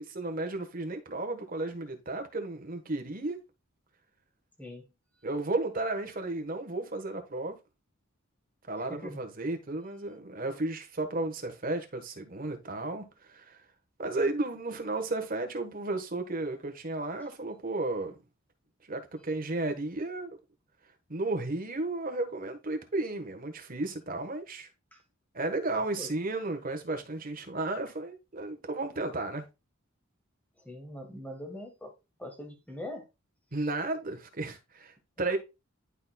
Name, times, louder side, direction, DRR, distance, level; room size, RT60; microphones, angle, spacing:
voice 1, 0.1-3.4 5.2-7.6 8.7-13.6 14.0-18.2 18.9-20.4 21.1-24.7 25.3-29.4 33.5-35.4, right 2 dB, 40° right, 1.3 m, -33 dB
voice 2, 8.8-9.2 17.2-17.3 24.9-25.0 25.7-26.1 30.6-31.9 32.2-33.1, left 1 dB, 5° left, 1.5 m, -42 dB
11.5 x 4.2 x 2.3 m
head